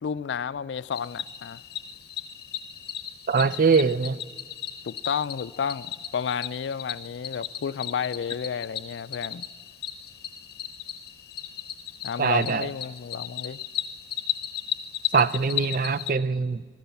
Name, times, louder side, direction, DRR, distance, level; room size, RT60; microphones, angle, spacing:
voice 1, 0.0-1.6 4.8-9.4 12.0-13.6, left 7 dB, 85° left, 0.4 m, -31 dB
Cricket, 0.9-16.1, left 10 dB, 60° left, 0.8 m, -35 dB
voice 2, 3.3-4.2 12.2-12.7 15.1-16.6, right 5 dB, 50° right, 0.4 m, -22 dB
14.5 x 12.5 x 7.1 m
head